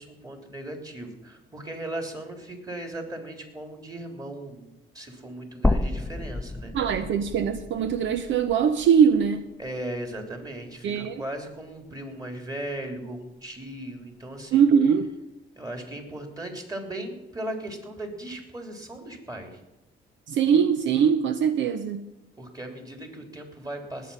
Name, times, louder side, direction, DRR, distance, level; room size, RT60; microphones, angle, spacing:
voice 1, 0.0-7.0 9.6-14.7 15.6-19.6 22.4-24.1, right 1 dB, 20° right, 3 dB, 3.4 m, -37 dB
sound 1, 5.6-9.8 10.2-10.3 11.7-11.8, left 2 dB, 5° left, 0.7 m, -30 dB
voice 2, 6.7-9.4 10.8-11.2 14.5-15.1 20.3-22.1, right 7 dB, 70° right, 10 dB, 0.8 m, -22 dB
19.5 x 8.4 x 5.7 m, 0.93 s
cardioid pair, 90°, 20 cm